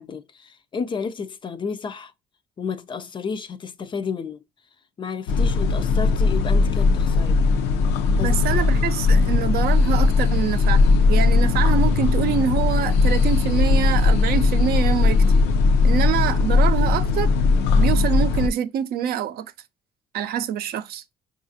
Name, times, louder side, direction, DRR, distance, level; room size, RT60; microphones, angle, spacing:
voice 1, 0.0-2.1 2.6-4.4 5.0-7.4 8.1-8.6, left 5 dB, 30° left, 0.3 m, -32 dB
sound 1, 5.3-18.5, left 4 dB, 85° left, 0.5 m, -18 dB
voice 2, 8.2-15.2 15.8-17.3 17.7-19.5 20.1-21.0, right 9 dB, 65° right, 0.5 m, -25 dB
4.8 x 2.4 x 2.6 m
cardioid pair, 110°, 17 cm